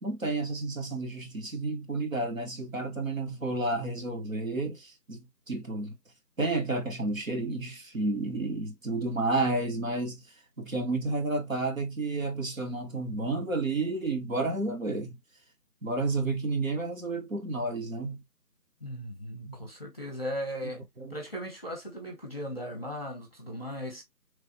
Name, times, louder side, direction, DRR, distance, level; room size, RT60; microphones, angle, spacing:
voice 1, 0.0-5.9 6.4-15.2 15.8-18.2 19.4-19.5 20.6-21.1, right 2 dB, 55° right, 0.8 m, -31 dB
voice 2, 18.8-20.8 21.1-24.0, equal, 35° left, 0.7 m, -37 dB
3.2 x 2.0 x 2.6 m
figure-of-eight pair, 165°, 49 cm